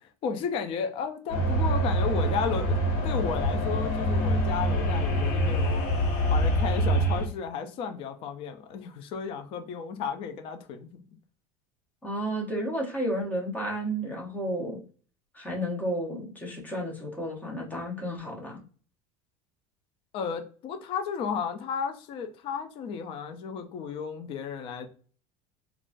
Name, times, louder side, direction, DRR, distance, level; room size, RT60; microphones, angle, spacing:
voice 1, 0.2-2.8 3.0-5.9 6.3-11.0 20.1-24.9, left 6 dB, 30° left, 7 dB, 0.3 m, -33 dB
sound 1, 1.3-7.3, equal, 50° left, 1.1 m, -25 dB
voice 2, 12.0-14.8 15.3-18.6, equal, 10° left, -1 dB, 0.7 m, -32 dB
3.6 x 2.3 x 2.5 m, 0.42 s
cardioid pair, 165°, 19 cm